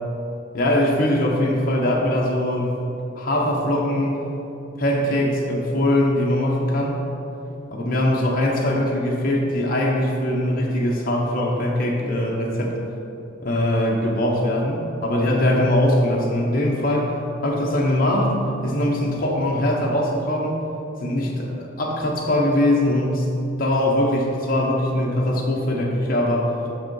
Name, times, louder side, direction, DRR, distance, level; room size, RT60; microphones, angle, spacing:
voice 1, 0.5-2.8 3.2-4.2 4.8-7.0 7.7-12.8 13.4-17.1 17.4-20.6 21.0-23.3 23.6-26.5, left 1 dB, 45° left, -2 dB, 0.8 m, -21 dB
6.2 x 4.9 x 4.6 m, 2.9 s
head